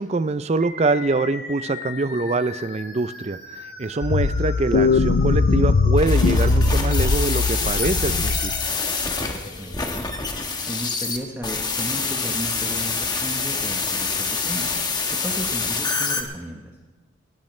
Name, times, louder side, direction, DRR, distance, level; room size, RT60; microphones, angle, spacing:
voice 1, 0.0-8.5, right 3 dB, 35° right, 13 dB, 0.5 m, -24 dB
sound 1, 0.6-10.6, left 3 dB, 55° left, 2.7 m, -40 dB
sound 2, 4.0-8.7, left 4 dB, 90° left, 0.5 m, -20 dB
sound 3, 6.0-16.2, left 4 dB, 20° left, 1.2 m, -26 dB
voice 2, 9.4-10.1 10.7-14.7 15.2-16.7, right 1 dB, 10° right, 0 dB, 1.0 m, -34 dB
19.5 x 16.5 x 3.2 m, 1.3 s
head